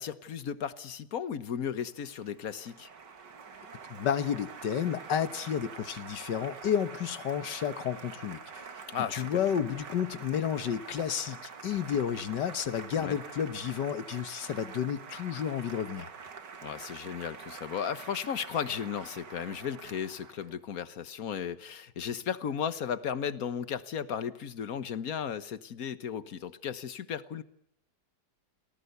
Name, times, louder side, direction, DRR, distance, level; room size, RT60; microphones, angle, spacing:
voice 1, 0.0-2.9 8.9-9.4 13.0-13.2 16.6-27.4, left 8 dB, 60° left, 1.5 m, -35 dB
Applause, 1.7-20.6, right 5 dB, 85° right, 2.5 m, -46 dB
voice 2, 3.9-8.8 9.1-16.1, left 8 dB, 80° left, 1.8 m, -31 dB
29.5 x 19.0 x 6.7 m
omnidirectional pair, 1.8 m